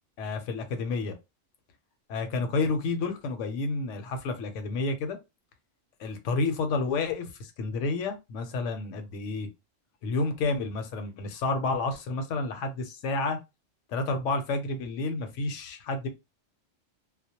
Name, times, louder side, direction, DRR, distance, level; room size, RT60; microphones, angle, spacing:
voice 1, 0.2-1.1 2.1-5.2 6.0-9.5 10.0-13.4 13.9-16.1, left 3 dB, 75° left, 0.9 m, -30 dB
2.3 x 2.0 x 2.7 m
omnidirectional pair, 1.3 m